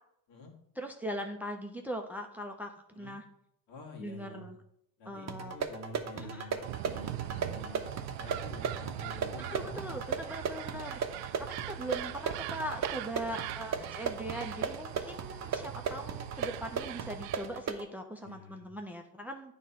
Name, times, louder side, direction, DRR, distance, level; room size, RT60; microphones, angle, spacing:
voice 1, 0.8-3.2 4.0-4.6 5.0-5.6 6.2-6.5 9.5-19.5, equal, 5° right, 4 dB, 0.8 m, -40 dB
voice 2, 3.7-4.5 5.0-9.7 13.7-13.8 18.2-18.7, left 2 dB, 60° left, 0 dB, 2.1 m, -48 dB
sound 1, 5.3-17.9, right 6 dB, 35° right, 0.9 m, -37 dB
sound 2, 6.6-17.6, right 14 dB, 70° right, 0.6 m, -42 dB
9.1 x 3.3 x 5.6 m, 0.73 s
hypercardioid pair, 65°, 49 cm